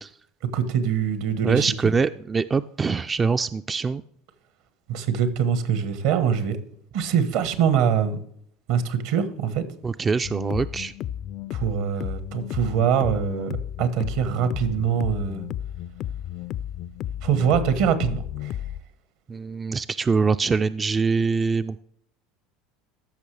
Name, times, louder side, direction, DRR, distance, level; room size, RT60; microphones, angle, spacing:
voice 1, 0.5-1.7 4.9-6.6 6.9-8.2 8.7-9.6 11.5-15.4 17.2-18.6, right 8 dB, 70° right, 11 dB, 1.3 m, -23 dB
voice 2, 1.4-4.0 9.8-10.9 19.3-21.8, right 4 dB, 25° right, 11 dB, 0.3 m, -24 dB
sound 1, 10.2-18.8, left 11 dB, 50° left, 0.4 m, -33 dB
14.0 x 6.1 x 3.3 m, 0.67 s
supercardioid pair, 95°, 0 cm